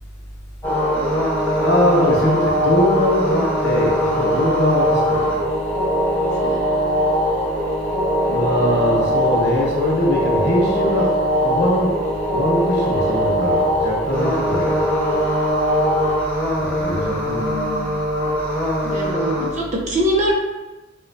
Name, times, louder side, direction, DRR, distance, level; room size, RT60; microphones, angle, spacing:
sound 1, 0.6-19.5, equal, 10° left, 0.9 m, -21 dB
voice 1, 1.6-5.4 8.3-11.1 11.4-11.9 12.3-14.8 16.6-17.6, left 1 dB, 55° left, -3 dB, 0.9 m, -21 dB
voice 2, 17.3-17.9 18.8-20.3, equal, 35° right, -3 dB, 0.7 m, -23 dB
5.6 x 2.3 x 2.7 m, 1.1 s
head